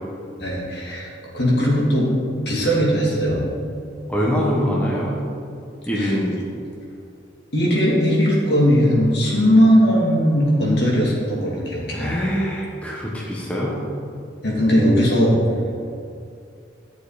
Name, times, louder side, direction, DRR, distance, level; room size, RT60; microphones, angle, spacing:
voice 1, 0.4-1.1 1.3-2.1 2.4-3.4 5.9-6.1 7.5-12.2 14.4-15.4, equal, 60° left, -4 dB, 2.8 m, -18 dB
voice 2, 4.1-5.2 5.9-6.4 11.9-13.9, equal, 5° left, -5 dB, 1.3 m, -23 dB
12.5 x 7.0 x 5.1 m, 2.5 s
head